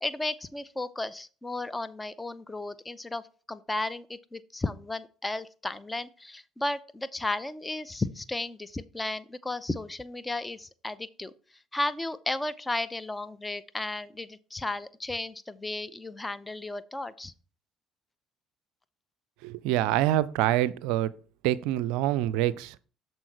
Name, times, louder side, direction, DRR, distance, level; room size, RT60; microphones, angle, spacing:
voice 1, 0.0-3.2 3.5-11.3 11.7-17.3, left 2 dB, 15° left, 0.6 m, -34 dB
voice 2, 19.4-21.1 21.4-22.8, right 13 dB, 65° right, 0.4 m, -26 dB
13.0 x 4.4 x 3.3 m
figure-of-eight pair, 55°, 0 cm